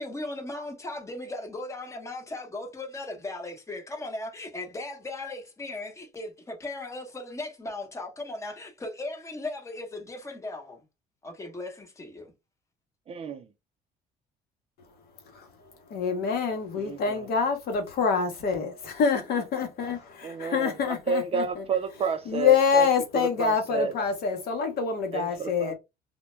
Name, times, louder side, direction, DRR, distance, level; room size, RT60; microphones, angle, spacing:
voice 1, 0.0-10.8 11.2-12.3, left 2 dB, 15° left, 0.8 m, -37 dB
voice 2, 13.1-13.5 16.8-17.3 20.2-22.9 23.1-24.0 25.1-25.7, right 5 dB, 35° right, 0.4 m, -31 dB
voice 3, 15.9-20.0 20.4-21.4 22.3-25.7, left 6 dB, 65° left, 0.8 m, -26 dB
2.2 x 2.1 x 2.9 m
cardioid pair, 110°, 17 cm